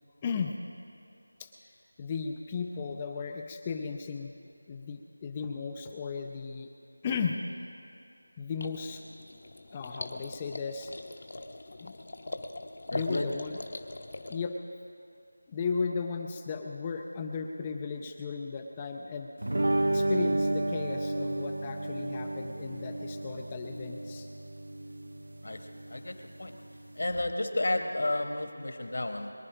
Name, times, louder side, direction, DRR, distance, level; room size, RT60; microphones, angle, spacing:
voice 1, 0.2-0.6 1.4-1.5 2.0-4.3 4.7-6.7 7.0-7.4 8.4-9.0 9.7-11.0 11.8-11.9 12.9-13.6 14.3-14.6 15.5-19.3 19.8-24.3, left 5 dB, 10° left, 4 dB, 0.4 m, -35 dB
sound 1, 8.6-14.4, left 2 dB, 40° left, 0.8 m, -42 dB
voice 2, 12.9-13.3 25.4-26.6 26.9-29.3, left 2 dB, 55° left, 5 dB, 1.4 m, -32 dB
sound 2, 19.4-27.1, right 1 dB, 65° right, 0.5 m, -32 dB
23.0 x 10.0 x 5.0 m, 2.5 s
figure-of-eight pair, 175°, 0 cm